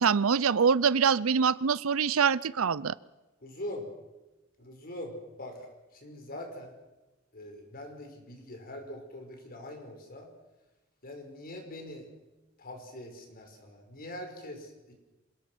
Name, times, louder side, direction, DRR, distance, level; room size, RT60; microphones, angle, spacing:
voice 1, 0.0-2.9, right 6 dB, 85° right, 20 dB, 0.6 m, -24 dB
voice 2, 3.4-3.9 4.6-5.7 5.9-6.7 7.3-10.3 11.0-12.1 12.6-14.9, left 1 dB, 45° left, 4 dB, 5.3 m, -43 dB
26.5 x 18.0 x 6.2 m, 1.1 s
head